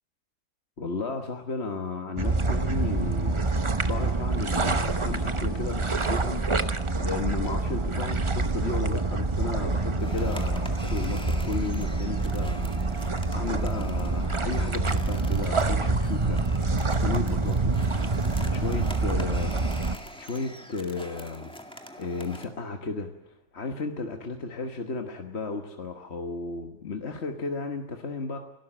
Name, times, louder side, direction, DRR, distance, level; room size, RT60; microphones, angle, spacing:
voice 1, 0.8-18.0 18.5-19.5 19.9-21.5 22.0-28.4, left 4 dB, 45° left, 4 dB, 1.6 m, -34 dB
sound 1, 2.2-20.0, right 3 dB, 25° right, 0.8 m, -26 dB
sound 2, 10.0-22.5, equal, 5° left, 1.9 m, -44 dB
29.5 x 12.5 x 8.9 m, 0.99 s
omnidirectional pair, 1.6 m